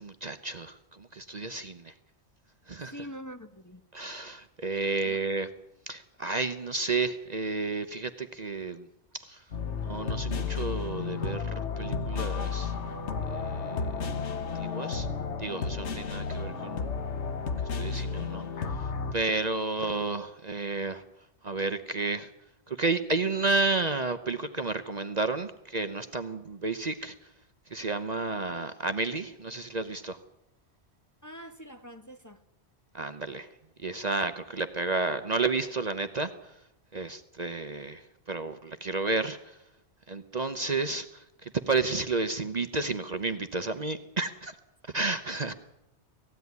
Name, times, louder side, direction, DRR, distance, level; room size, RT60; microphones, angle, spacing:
voice 1, 0.0-1.9 2.7-2.9 3.9-5.5 5.9-8.9 9.1-9.4 9.8-12.7 13.3-13.8 14.5-15.1 15.4-16.8 17.7-18.4 18.8-21.0 21.4-22.3 22.7-27.1 27.7-30.2 32.9-33.5 33.8-36.5 36.9-39.6 40.1-44.6 44.9-45.5, right 3 dB, 40° right, 9 dB, 0.9 m, -31 dB
voice 2, 2.9-3.8 5.0-5.2 31.2-32.4, equal, 15° left, 5 dB, 1.1 m, -44 dB
sound 1, 9.5-19.1, left 5 dB, 90° left, 1.6 m, -32 dB
18.5 x 16.0 x 9.5 m, 0.89 s
omnidirectional pair, 1.1 m